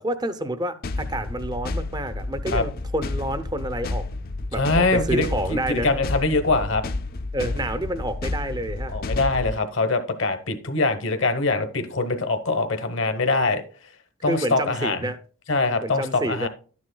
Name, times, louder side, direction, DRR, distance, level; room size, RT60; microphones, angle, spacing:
voice 1, 0.0-4.1 4.5-5.9 7.3-8.9 14.3-15.2 15.8-16.5, right 1 dB, 20° right, 0.6 m, -28 dB
sound 1, 0.8-9.6, left 2 dB, 45° left, 0.5 m, -30 dB
voice 2, 4.6-6.8 8.8-13.6 14.2-15.1 15.5-16.5, left 3 dB, 65° left, 1.0 m, -23 dB
12.0 x 9.6 x 2.3 m
head